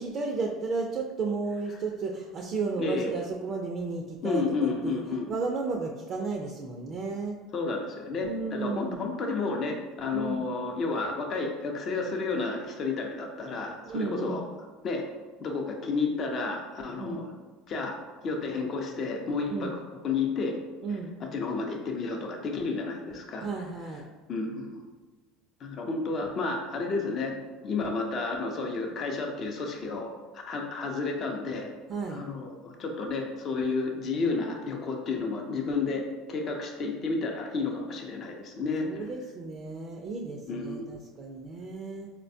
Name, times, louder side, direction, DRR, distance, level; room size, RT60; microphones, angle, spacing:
voice 1, 0.0-5.0 5.3-7.4 8.2-9.0 10.1-10.4 13.8-14.4 16.9-17.2 19.5-19.7 20.8-21.1 23.4-24.0 31.9-32.2 38.8-42.1, right 4 dB, 40° right, 1 dB, 0.4 m, -33 dB
voice 2, 2.8-3.1 4.2-5.3 7.5-14.4 14.8-15.0 15.4-17.3 17.7-18.0 18.2-19.8 20.0-20.6 21.2-23.5 24.3-24.8 25.6-27.4 27.6-31.7 32.1-38.9 40.5-40.9, left 4 dB, 45° left, 2 dB, 0.5 m, -31 dB
4.1 x 2.1 x 2.6 m, 1.3 s
supercardioid pair, 100°, 0 cm